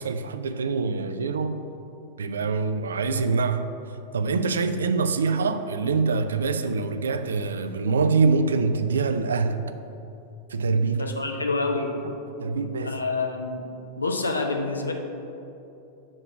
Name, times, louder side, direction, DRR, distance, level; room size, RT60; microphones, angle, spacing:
voice 1, 0.0-1.6 2.2-3.7 4.1-9.6 10.5-11.1 12.4-13.0, right 4 dB, 70° right, 0.3 m, -24 dB
voice 2, 10.9-11.9 12.8-13.7 14.0-14.9, left 3 dB, 80° left, 0.6 m, -27 dB
7.4 x 3.0 x 5.7 m
figure-of-eight pair, 90°, 0 cm